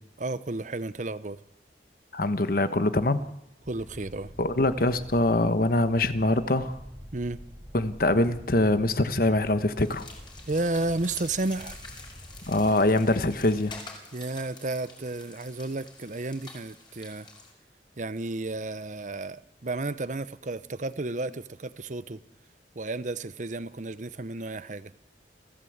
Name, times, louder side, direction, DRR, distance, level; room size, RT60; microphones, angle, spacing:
voice 1, 0.2-1.4 3.7-4.3 7.1-7.4 10.5-11.8 14.1-17.3 18.0-22.2 22.7-24.9, right 2 dB, 45° right, 15 dB, 0.8 m, -32 dB
voice 2, 2.1-3.2 4.4-6.8 7.7-10.1 12.5-13.7, left 2 dB, 55° left, 11 dB, 1.2 m, -24 dB
sound 1, 3.6-13.8, equal, 20° right, 3.4 m, -47 dB
sound 2, 9.8-17.5, left 3 dB, 25° left, 5.4 m, -47 dB
27.5 x 16.0 x 8.0 m, 0.90 s
head